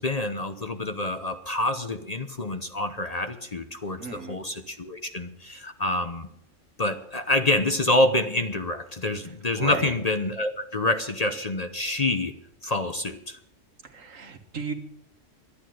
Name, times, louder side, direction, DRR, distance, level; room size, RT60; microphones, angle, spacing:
voice 1, 0.0-6.3 6.8-12.3 12.6-13.4, left 2 dB, 35° left, 8 dB, 0.8 m, -27 dB
voice 2, 4.0-4.4 9.6-9.9 13.9-14.7, right 5 dB, 80° right, 5 dB, 1.9 m, -34 dB
11.5 x 10.5 x 7.7 m, 0.75 s
omnidirectional pair, 1.3 m